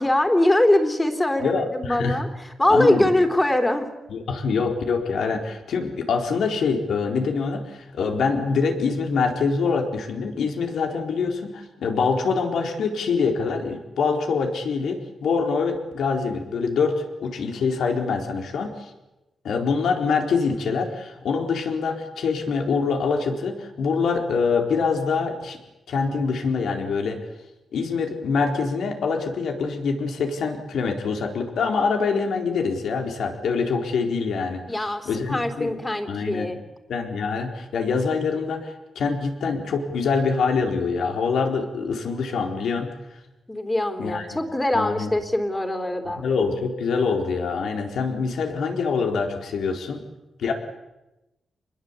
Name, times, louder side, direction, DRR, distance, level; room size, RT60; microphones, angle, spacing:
voice 1, 0.0-3.9 34.7-36.6 43.5-46.2, left 1 dB, 15° left, 5 dB, 3.6 m, -22 dB
voice 2, 1.4-2.2 2.7-3.1 4.1-18.9 19.4-25.6 25.9-27.2 27.7-35.7 36.1-36.5 36.9-42.9 44.0-44.4 44.7-45.1 46.1-50.0 50.4-50.5, left 5 dB, 80° left, 3 dB, 4.3 m, -25 dB
28.0 x 21.0 x 8.5 m, 0.98 s
cardioid pair, 105°, 0 cm